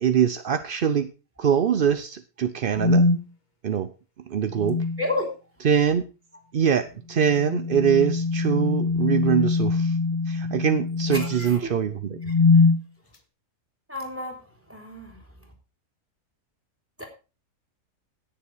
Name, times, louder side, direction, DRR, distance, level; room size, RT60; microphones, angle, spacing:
voice 1, 0.0-1.1 1.4-3.1 3.6-3.9 4.3-4.8 5.6-6.0 6.5-10.0 10.3-12.2, right 8 dB, 60° right, 0.5 m, -23 dB
sound 1, 2.8-3.2 4.6-5.1 7.3-11.5 12.2-12.8, left 3 dB, 30° left, 1.3 m, -22 dB
voice 2, 5.0-5.3 11.1-11.7 13.9-14.4 14.7-15.2 17.0-17.1, left 2 dB, 10° right, 3.2 m, -31 dB
16.5 x 7.0 x 4.6 m
omnidirectional pair, 1.7 m